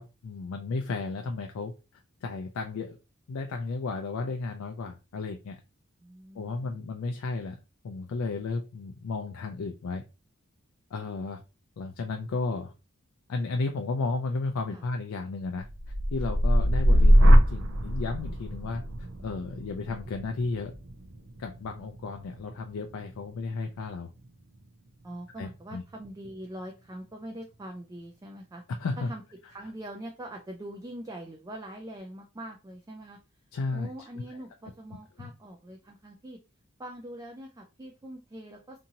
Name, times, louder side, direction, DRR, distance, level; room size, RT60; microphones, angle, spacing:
voice 1, 0.0-3.0 3.3-5.6 6.4-7.6 7.8-10.0 10.9-11.4 11.8-12.7 13.3-15.7 16.1-18.8 19.2-20.7 21.4-24.1 25.4-25.8 28.8-29.1 33.5-33.9 35.2-35.3, left 3 dB, 85° left, 4 dB, 0.4 m, -33 dB
voice 2, 6.0-6.8 14.7-14.8 16.8-17.3 25.0-28.6 29.0-29.2 29.5-33.2 33.7-36.4 36.8-38.8, right 1 dB, 15° right, 2 dB, 0.3 m, -43 dB
sound 1, 15.7-23.6 24.1-24.6, equal, 80° right, 0.5 m, -23 dB
2.7 x 2.6 x 2.7 m, 0.29 s
head